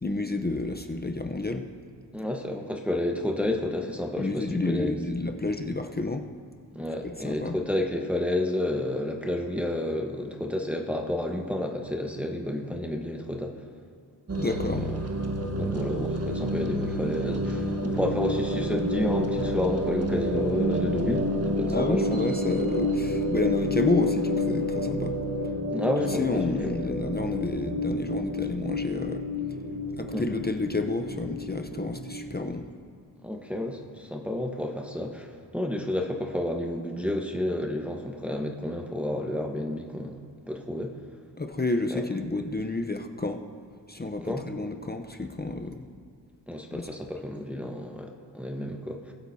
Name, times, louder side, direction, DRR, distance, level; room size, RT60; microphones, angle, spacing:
voice 1, 0.0-1.7 4.2-6.2 7.0-7.6 14.4-14.8 21.7-25.2 26.1-29.2 30.0-32.7 41.4-43.4 43.9-45.9 46.7-46.9, left 2 dB, 20° left, 5 dB, 0.8 m, -30 dB
voice 2, 2.1-4.9 6.7-13.5 14.5-15.0 15.6-21.3 21.6-22.2 25.7-26.7 30.1-30.4 33.2-40.2 40.5-41.0 41.9-42.0 44.3-44.4 46.5-49.1, left 1 dB, 5° right, 1 dB, 1.3 m, -30 dB
sound 1, 14.3-32.4, left 1 dB, 35° right, 1.3 m, -29 dB
20.0 x 8.0 x 2.8 m, 2.4 s
cardioid pair, 45°, 44 cm